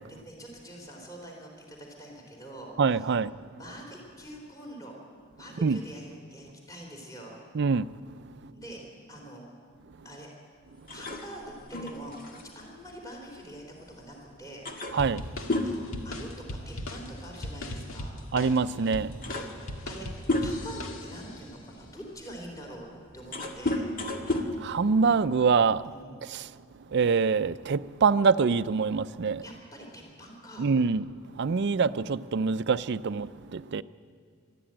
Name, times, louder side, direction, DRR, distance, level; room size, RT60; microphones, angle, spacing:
voice 1, 0.1-3.1 3.6-5.0 5.4-7.4 8.5-9.4 10.0-10.3 10.9-12.1 12.6-14.7 15.6-18.2 19.2-22.9 23.1-23.9 25.9-26.2 29.4-30.7, equal, 15° left, 3.6 m, -45 dB
voice 2, 2.8-3.3 5.6-5.8 7.5-7.9 14.9-15.3 18.3-19.1 24.6-25.9 26.2-26.5 26.9-29.4 30.6-31.1 31.4-33.8, right 5 dB, 55° right, 0.5 m, -25 dB
sound 1, 10.9-13.9 14.2-14.3 14.7-16.8 17.1-17.4 18.4-18.5 18.9-20.9 21.5-25.5, left 2 dB, 45° left, 1.9 m, -33 dB
sound 2, 15.0-21.4, left 1 dB, 80° left, 1.8 m, -39 dB
23.0 x 13.0 x 8.8 m
head